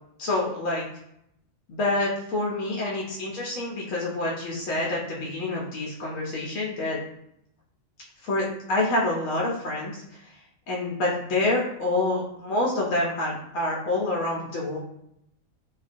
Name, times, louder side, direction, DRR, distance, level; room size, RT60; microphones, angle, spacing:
voice 1, 0.2-0.9 1.7-7.0 8.2-10.2 10.7-14.8, left 2 dB, 70° left, -4 dB, 0.9 m, -27 dB
2.3 x 2.2 x 2.4 m, 0.77 s
omnidirectional pair, 1.4 m